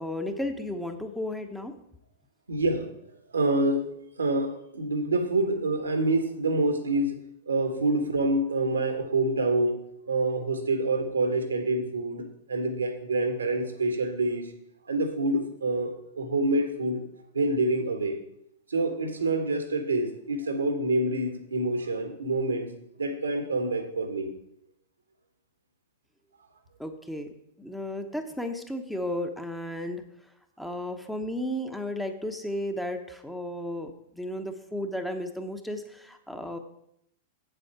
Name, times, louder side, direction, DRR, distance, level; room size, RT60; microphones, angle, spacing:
voice 1, 0.0-1.8 26.8-27.3 27.6-30.0 30.6-36.6, left 1 dB, ahead, 5 dB, 1.0 m, -34 dB
voice 2, 2.5-2.9 3.3-7.2 7.5-9.8 10.1-14.5 14.9-17.1 17.3-18.2 18.7-22.7 23.0-24.3, right 2 dB, 80° right, 6 dB, 1.5 m, -27 dB
8.2 x 7.7 x 4.8 m, 0.75 s
figure-of-eight pair, 100°, 0 cm